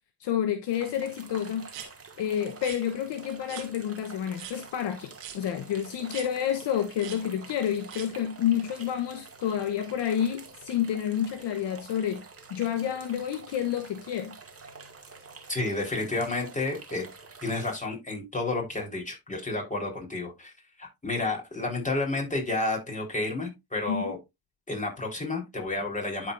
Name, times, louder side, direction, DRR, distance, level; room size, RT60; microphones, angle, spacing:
voice 1, 0.2-1.7 2.2-12.2 12.5-14.4 23.9-24.1, left 9 dB, 60° left, 1.0 m, -29 dB
sound 1, 0.7-17.8, right 4 dB, 30° right, 2.1 m, -48 dB
sound 2, 1.7-1.9 2.6-2.8 3.5-3.7 4.3-4.6 5.2-5.4 6.1-6.3 7.0-7.2 7.9-8.1, right 10 dB, 80° right, 2.1 m, -41 dB
voice 2, 15.5-17.1 17.4-20.5 20.8-24.2 24.7-26.3, left 2 dB, 15° left, 4.1 m, -31 dB
11.5 x 4.7 x 2.5 m
hypercardioid pair, 55°, 49 cm